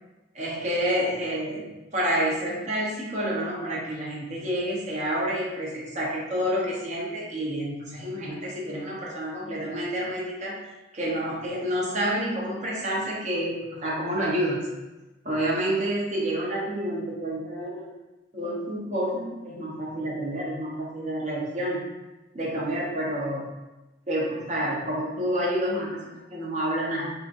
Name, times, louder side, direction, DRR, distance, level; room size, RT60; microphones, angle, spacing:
voice 1, 0.3-10.5 10.9-14.7 15.2-17.9 18.3-21.9 22.3-23.5 24.1-27.1, equal, 40° right, -5 dB, 0.8 m, -29 dB
3.5 x 2.8 x 2.5 m, 1.1 s
head